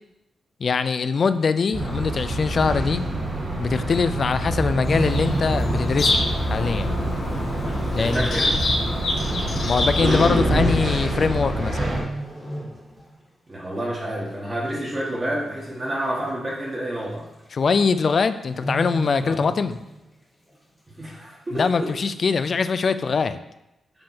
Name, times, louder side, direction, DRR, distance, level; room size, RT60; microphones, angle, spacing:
voice 1, 0.6-3.0 3.6-7.0 7.9-8.3 9.7-12.0 17.5-19.8 21.5-23.4, left 5 dB, 45° left, 12 dB, 0.3 m, -22 dB
sound 1, 1.7-12.0, right 1 dB, 70° right, 2.5 m, -25 dB
sound 2, 4.6-6.3 6.5-6.8 7.4-7.5 8.4-8.5 8.7-8.8 9.6-9.9 11.0-11.4 11.6-13.2 13.5-13.8 14.3-14.8 15.1-15.2 15.5-15.6 16.0-16.1 17.0-17.1 17.4-17.7 18.0-18.1 18.5-20.1 20.5-20.6, right 1 dB, ahead, 1.7 m, -33 dB
Bird vocalization bird call bird song, 4.8-10.3, left 2 dB, 65° left, 1.4 m, -27 dB
voice 2, 8.0-8.6 13.5-17.3 19.3-19.4 21.0-21.9, right 1 dB, 30° right, -5 dB, 1.8 m, -29 dB
7.7 x 3.6 x 4.5 m, 0.91 s
wide cardioid pair, 135°, 0 cm